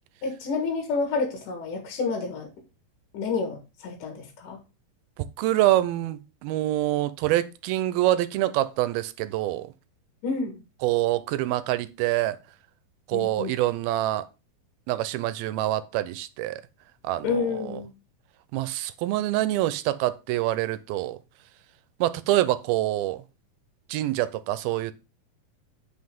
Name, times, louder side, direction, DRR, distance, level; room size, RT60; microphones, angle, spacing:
voice 1, 0.2-2.5 3.1-4.6 10.2-10.6 13.1-13.5 17.2-17.9, left 4 dB, 65° left, 3.0 m, -29 dB
voice 2, 5.2-9.7 10.8-12.4 13.1-14.3 14.9-16.6 17.0-17.7 18.5-21.2 22.0-23.2 23.9-24.9, right 15 dB, 90° right, 2.5 m, -26 dB
9.7 x 5.9 x 3.6 m
omnidirectional pair, 4.2 m